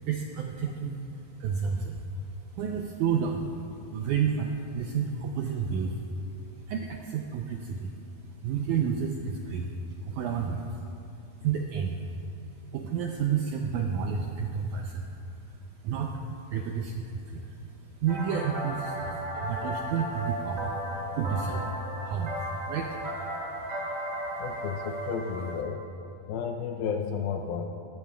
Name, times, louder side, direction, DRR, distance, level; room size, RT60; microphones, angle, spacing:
voice 1, 0.0-3.5 3.9-6.0 6.6-8.0 8.3-10.8 11.4-12.1 12.7-15.2 15.4-17.6 17.9-23.3 23.7-23.8 24.3-24.4, right 6 dB, 90° right, 2 dB, 1.7 m, -31 dB
sound 1, 18.1-25.5, right 1 dB, 40° right, 1.6 m, -35 dB
voice 2, 24.4-25.8 26.3-27.6, left 6 dB, 85° left, 3 dB, 2.4 m, -32 dB
19.5 x 14.0 x 2.3 m, 2.6 s
omnidirectional pair, 4.2 m